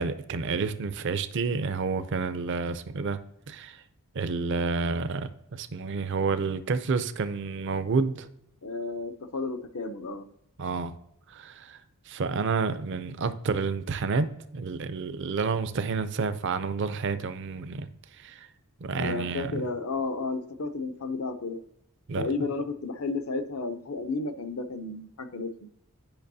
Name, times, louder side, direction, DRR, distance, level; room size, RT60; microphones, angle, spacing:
voice 1, 0.0-3.2 3.5-3.8 4.1-8.3 10.6-10.9 11.3-11.8 12.1-17.9 18.2-18.5 18.8-19.6 22.1-22.3, right 4 dB, 55° right, 0.4 m, -29 dB
voice 2, 8.6-10.2 19.0-21.6 22.2-25.7, left 3 dB, 70° left, 0.6 m, -32 dB
8.9 x 5.3 x 2.7 m
head